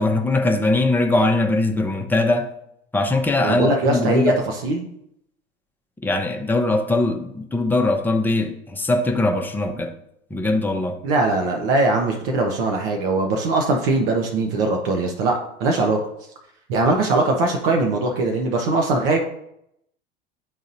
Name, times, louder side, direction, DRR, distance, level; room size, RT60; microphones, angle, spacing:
voice 1, 0.0-2.5 2.9-4.4 6.0-9.9 10.3-11.0, left 2 dB, 5° left, 3 dB, 0.8 m, -21 dB
voice 2, 3.4-4.9 11.0-16.0 16.7-19.2, right 2 dB, 60° right, 2 dB, 1.1 m, -21 dB
11.0 x 4.0 x 2.6 m, 0.75 s
figure-of-eight pair, 80°, 33 cm